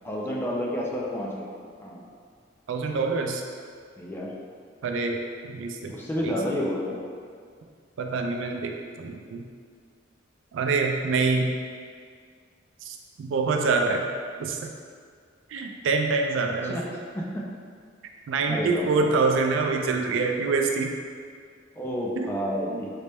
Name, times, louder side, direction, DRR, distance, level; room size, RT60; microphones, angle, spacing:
voice 1, 0.0-1.5 1.8-2.0 4.0-4.3 5.9-7.0 16.5-17.5 18.5-19.1 21.8-22.9, equal, 10° left, -3 dB, 0.4 m, -30 dB
voice 2, 2.7-3.4 4.8-5.2 5.4-5.9 6.2-6.3 8.0-8.7 9.0-9.4 10.5-11.5 12.8-14.0 14.4-14.7 15.5-16.8 18.3-20.9 22.2-22.4 22.7-22.8, right 4 dB, 70° right, 3 dB, 0.3 m, -25 dB
4.1 x 2.1 x 3.3 m, 2.1 s
head